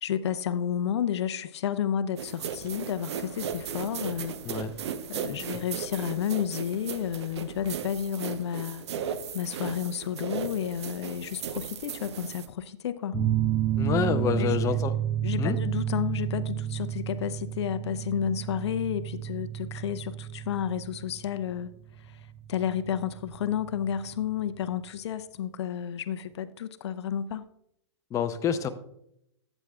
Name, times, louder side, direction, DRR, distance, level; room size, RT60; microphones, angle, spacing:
voice 1, 0.0-4.4 5.1-8.8 9.3-13.2 14.3-14.8 15.2-21.7 22.0-22.2 22.5-27.5, left 9 dB, 70° left, 13 dB, 0.5 m, -31 dB
sound 1, 2.2-12.5, right 7 dB, 70° right, 0.8 m, -36 dB
sound 2, 13.1-24.3, right 11 dB, 15° right, 1.4 m, -31 dB
voice 2, 13.8-14.9 15.4-15.6 28.1-28.7, left 8 dB, 20° left, 10 dB, 0.6 m, -27 dB
12.5 x 7.9 x 2.3 m, 0.75 s
hypercardioid pair, 115°, 15 cm